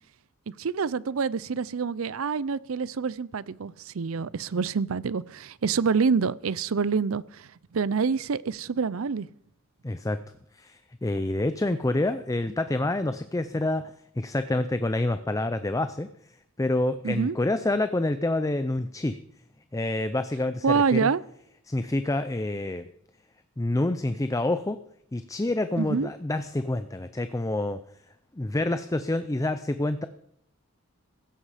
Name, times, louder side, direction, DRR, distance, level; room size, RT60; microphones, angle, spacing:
voice 1, 0.6-9.3 17.0-17.4 20.6-21.2 25.8-26.1, right 5 dB, 70° right, 20 dB, 0.5 m, -27 dB
voice 2, 9.8-10.2 10.5-13.9 14.2-16.1 16.6-19.2 19.7-21.1 21.7-22.8 23.6-24.8 25.1-27.8 28.4-30.1, left 2 dB, 15° left, 11 dB, 0.5 m, -27 dB
16.0 x 13.0 x 5.0 m, 0.72 s
head